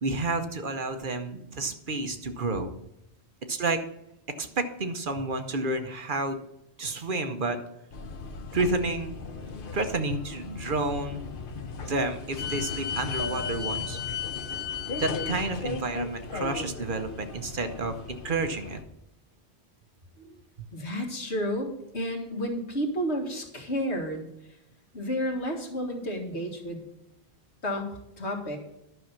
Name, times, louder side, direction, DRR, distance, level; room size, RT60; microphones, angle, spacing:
voice 1, 0.0-2.7 3.5-3.8 4.4-6.4 6.8-7.6 8.5-9.2 9.7-11.2 11.8-14.0 15.0-18.8 20.2-20.3, right 2 dB, 50° right, 7 dB, 1.0 m, -30 dB
sound 1, 7.9-18.8, left 5 dB, 55° left, 1.0 m, -35 dB
voice 2, 20.7-24.3 24.9-26.8 27.6-28.6, equal, 80° left, 2 dB, 2.1 m, -31 dB
11.0 x 6.3 x 5.8 m, 0.84 s
omnidirectional pair, 1.1 m